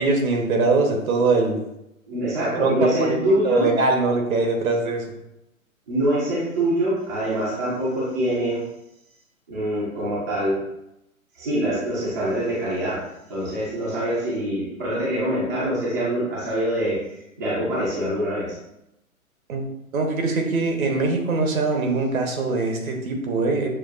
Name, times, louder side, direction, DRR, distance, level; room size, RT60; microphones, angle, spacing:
voice 1, 0.0-1.6 2.4-3.2 3.4-5.1 19.5-19.6 19.9-23.7, right 3 dB, 75° right, 2 dB, 1.1 m, -22 dB
voice 2, 2.1-3.7 5.9-8.6 9.5-10.6 11.3-13.0 13.3-18.6, right 1 dB, 15° right, -7 dB, 0.3 m, -24 dB
6.2 x 2.3 x 2.4 m, 0.87 s
hypercardioid pair, 135°, 42 cm